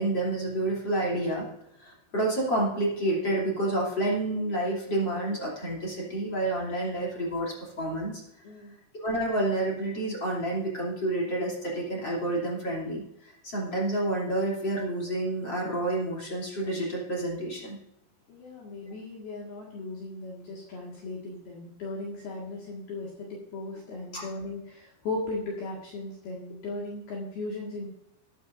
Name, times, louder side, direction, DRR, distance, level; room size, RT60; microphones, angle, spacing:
voice 1, 0.0-1.4 1.8-8.2 8.9-17.8 24.1-24.2, right 1 dB, 30° left, -4 dB, 3.2 m, -29 dB
voice 2, 8.4-8.8 18.3-27.9, left 2 dB, 65° left, -4 dB, 3.5 m, -37 dB
20.5 x 9.3 x 2.6 m, 0.82 s
omnidirectional pair, 5.1 m